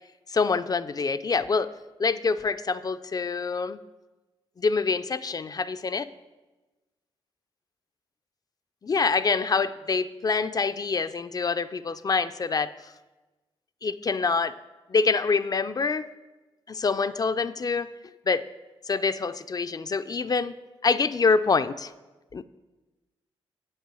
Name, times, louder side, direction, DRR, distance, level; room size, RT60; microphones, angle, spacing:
voice 1, 0.3-1.7 2.0-3.8 4.6-6.1 8.8-12.7 13.8-14.5 14.9-16.1 16.7-17.9 18.3-18.5 18.9-20.6 20.8-21.9 22.3-22.4, left 4 dB, 35° left, 11 dB, 0.4 m, -26 dB
7.9 x 5.5 x 7.6 m, 1.2 s
cardioid pair, 70°, 11 cm